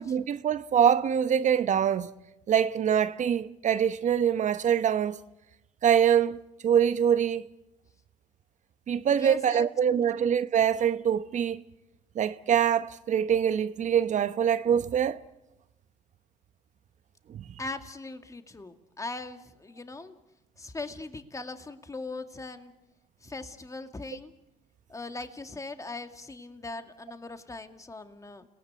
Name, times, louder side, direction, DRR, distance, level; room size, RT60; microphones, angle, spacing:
voice 1, 0.0-2.1 2.5-5.2 5.8-7.5 8.9-11.6 12.1-15.2 17.3-17.5, right 8 dB, 45° right, 1.0 m, -24 dB
voice 2, 9.2-9.7 9.9-10.3 17.6-20.1 20.6-22.7 23.2-24.3 24.9-28.5, left 3 dB, 20° left, 2.2 m, -40 dB
30.0 x 18.5 x 8.1 m
hypercardioid pair, 65°, 17 cm